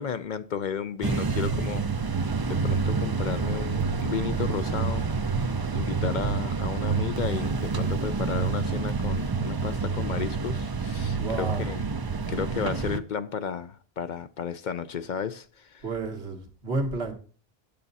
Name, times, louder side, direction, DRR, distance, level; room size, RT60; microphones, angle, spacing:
voice 1, 0.0-2.1 2.5-5.1 5.7-11.9 12.3-15.8, left 7 dB, 55° left, 0.6 m, -33 dB
sound 1, 1.0-13.0, right 4 dB, 35° right, 0.4 m, -28 dB
voice 2, 11.2-11.8 15.8-17.1, right 3 dB, 90° right, 1.8 m, -31 dB
8.6 x 8.0 x 4.1 m
omnidirectional pair, 1.1 m